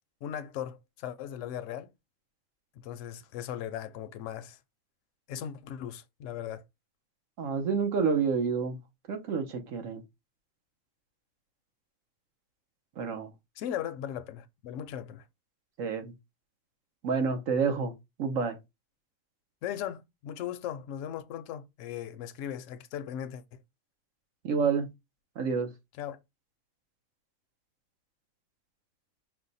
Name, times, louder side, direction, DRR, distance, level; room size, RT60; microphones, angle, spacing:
voice 1, 0.2-1.9 2.8-4.6 5.3-6.6 13.6-15.2 19.6-23.6 26.0-26.2, left 10 dB, 70° left, 0.8 m, -38 dB
voice 2, 7.4-8.8 9.1-10.0 13.0-13.3 15.8-16.1 17.0-17.9 18.2-18.6 24.4-24.9 25.4-25.7, right 5 dB, 70° right, 1.2 m, -28 dB
5.0 x 2.2 x 4.0 m
omnidirectional pair, 1.4 m